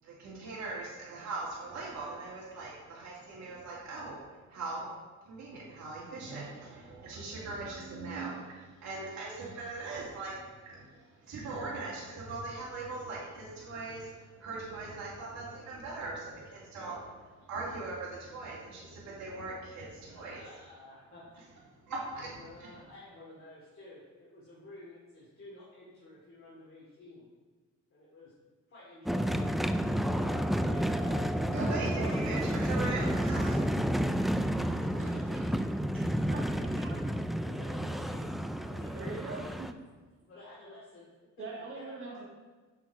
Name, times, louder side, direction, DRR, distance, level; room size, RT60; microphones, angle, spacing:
voice 1, 0.0-4.2 4.5-4.9 5.3-20.4 21.8-22.7 31.5-33.6, right 3 dB, 65° right, -7 dB, 2.5 m, -40 dB
voice 2, 20.1-21.3 22.3-27.3 27.9-28.3 28.7-29.5 30.1-31.5 34.8-35.5 37.4-38.3 38.6-39.6 40.3-41.1 41.5-42.2, left 2 dB, 45° left, -7 dB, 2.5 m, -52 dB
sound 1, 29.1-39.7, equal, ahead, 0.3 m, -30 dB
voice 3, 31.5-32.3 35.0-35.1 35.9-36.0 36.3-37.0 38.9-39.7 41.4-42.3, right 3 dB, 45° right, -3 dB, 1.7 m, -41 dB
7.0 x 6.1 x 4.7 m, 1.3 s
cardioid pair, 90°, 30 cm